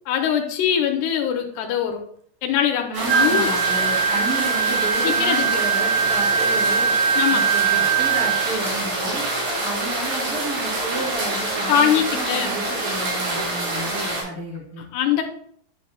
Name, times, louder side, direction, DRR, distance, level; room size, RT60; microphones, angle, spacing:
voice 1, 0.1-2.0 2.4-3.5 5.0-5.7 7.2-7.4 11.7-12.5 14.9-15.2, left 9 dB, 80° left, 3 dB, 2.6 m, -22 dB
voice 2, 2.9-6.9 7.3-9.2 9.6-14.9, right 2 dB, ahead, -7 dB, 1.9 m, -31 dB
sound 1, 2.9-14.2, right 2 dB, 65° right, 4.2 m, -26 dB
Wind instrument woodwind instrument, 3.1-8.5, right 6 dB, 85° right, 2.9 m, -21 dB
10.0 x 5.4 x 2.3 m, 0.65 s
omnidirectional pair, 5.1 m